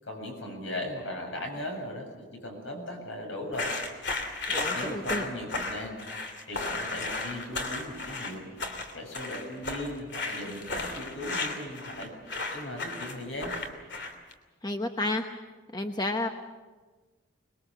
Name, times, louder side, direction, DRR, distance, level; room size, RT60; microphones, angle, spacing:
voice 1, 0.0-3.7 4.3-6.0 6.5-8.4 8.9-12.1 12.5-13.5, left 1 dB, 75° left, 2 dB, 7.6 m, -38 dB
sound 1, 3.5-14.3, left 3 dB, 60° left, 2.9 m, -34 dB
voice 2, 4.5-5.3 14.6-15.3 15.7-16.3, left 2 dB, 20° left, 5 dB, 0.9 m, -31 dB
25.0 x 21.5 x 6.9 m, 1.3 s
head